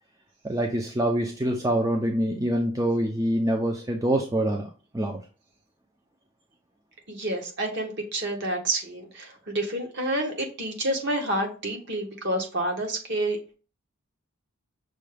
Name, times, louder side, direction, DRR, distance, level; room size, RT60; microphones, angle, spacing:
voice 1, 0.4-4.7 4.9-5.2, right 1 dB, 15° right, 0.4 m, -25 dB
voice 2, 7.1-13.5, right 1 dB, 55° right, 1.1 m, -29 dB
6.2 x 2.3 x 3.3 m
head